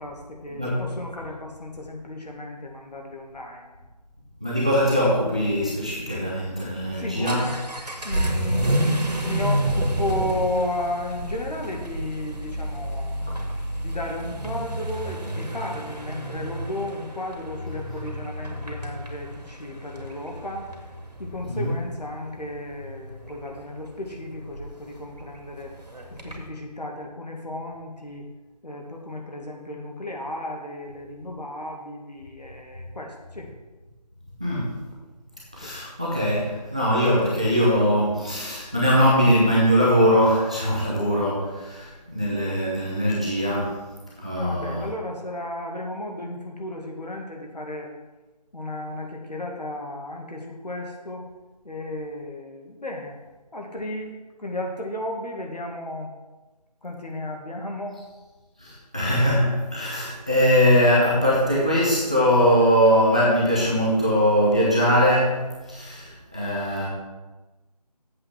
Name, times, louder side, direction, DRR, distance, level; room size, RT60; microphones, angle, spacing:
voice 1, 0.0-3.8 7.0-7.6 8.0-8.7 9.1-20.7 21.2-25.7 26.1-28.3 28.6-33.5 35.6-35.8 44.4-47.9 48.5-51.3 51.6-53.2 53.5-54.1 54.4-56.1 56.8-58.0, left 1 dB, 75° left, 1 dB, 2.1 m, -34 dB
voice 2, 4.4-7.5 21.4-21.7 34.4-34.8 35.5-43.9 44.2-44.9 58.6-66.9, equal, 10° right, -6 dB, 0.6 m, -21 dB
Vehicle / Accelerating revving vroom, 6.7-26.5, right 1 dB, 70° right, 2.0 m, -30 dB
7.8 x 7.7 x 4.7 m, 1.2 s
figure-of-eight pair, 165°, 21 cm